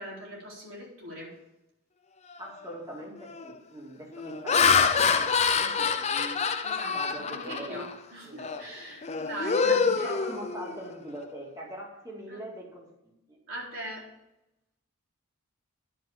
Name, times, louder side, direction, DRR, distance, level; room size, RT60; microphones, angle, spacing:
voice 1, 0.0-1.4 6.6-10.1 12.3-12.4 13.5-14.1, right 1 dB, 60° right, -4 dB, 4.1 m, -41 dB
Laughter, 2.4-2.6 3.2-3.5 4.1-7.9 8.4-8.6 9.0-10.9, left 5 dB, 30° left, 0.6 m, -26 dB
voice 2, 2.4-6.5 6.9-7.9 8.2-8.7 9.6-13.4, equal, 15° right, -2 dB, 2.3 m, -42 dB
10.5 x 5.8 x 7.2 m, 0.89 s
head